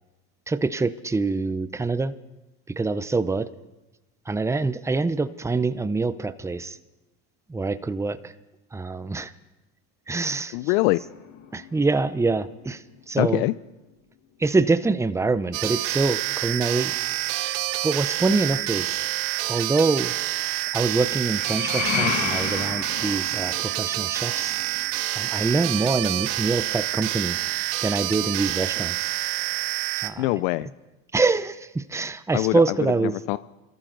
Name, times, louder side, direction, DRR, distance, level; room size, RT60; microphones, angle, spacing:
voice 1, 0.5-2.1 2.7-3.5 4.3-6.8 7.5-8.3 8.7-9.3 10.1-10.6 11.5-13.5 14.4-16.9 17.8-19.0 19.5-20.1 20.7-24.5 25.1-27.4 27.8-29.1 30.0-30.3 31.1-33.2, right 3 dB, 5° right, 13 dB, 0.6 m, -25 dB
voice 2, 10.5-11.0 13.2-13.5 30.2-30.7 32.3-32.8 33.3-33.4, left 20 dB, 80° left, 16 dB, 0.5 m, -23 dB
sound 1, 11.0-13.7 21.1-26.8, left 6 dB, 45° left, 1.8 m, -33 dB
sound 2, 15.5-30.1, right 16 dB, 75° right, 0.9 m, -27 dB
25.5 x 13.5 x 3.9 m, 1.1 s
supercardioid pair, 95°, 41 cm